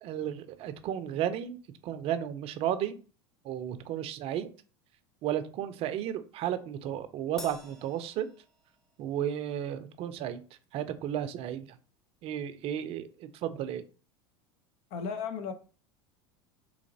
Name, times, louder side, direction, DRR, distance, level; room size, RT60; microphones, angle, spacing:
voice 1, 0.0-1.6 1.8-3.0 3.4-4.5 5.2-8.3 9.0-10.4 10.7-11.8 12.2-13.8, right 10 dB, 50° right, 0.5 m, -33 dB
Crash cymbal, 7.4-9.0, left 1 dB, 5° left, 0.6 m, -48 dB
voice 2, 14.9-15.5, left 6 dB, 55° left, 0.7 m, -34 dB
3.9 x 2.8 x 2.7 m
hypercardioid pair, 90°, 13 cm